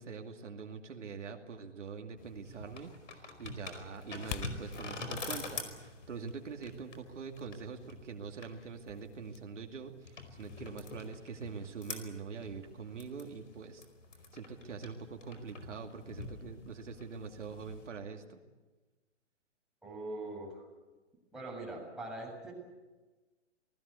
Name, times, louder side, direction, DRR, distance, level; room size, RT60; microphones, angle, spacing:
voice 1, 0.0-13.8 14.3-18.4, right 5 dB, 75° right, 4 dB, 2.5 m, -44 dB
sound 1, 2.2-17.9, left 3 dB, 85° left, 5.0 m, -46 dB
sound 2, 3.9-9.4, left 10 dB, 30° left, 1.1 m, -50 dB
voice 2, 19.8-20.6 21.3-22.5, right 2 dB, ahead, -3 dB, 7.4 m, -42 dB
27.0 x 19.0 x 8.3 m, 1.2 s
hypercardioid pair, 135°, 36 cm